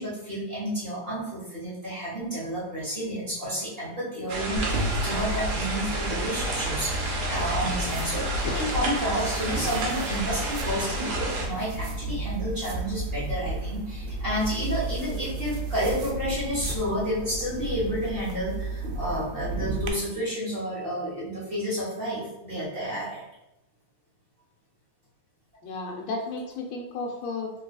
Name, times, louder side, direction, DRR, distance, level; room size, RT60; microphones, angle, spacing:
voice 1, 0.0-23.2, equal, 35° right, -8 dB, 1.1 m, -31 dB
sound 1, 4.3-11.5, right 2 dB, 55° right, 0.9 m, -31 dB
sound 2, 4.6-19.9, right 1 dB, 75° right, 1.2 m, -33 dB
voice 2, 25.6-27.5, left 3 dB, 75° left, 0 dB, 1.3 m, -33 dB
3.9 x 3.0 x 2.3 m, 0.92 s
omnidirectional pair, 2.1 m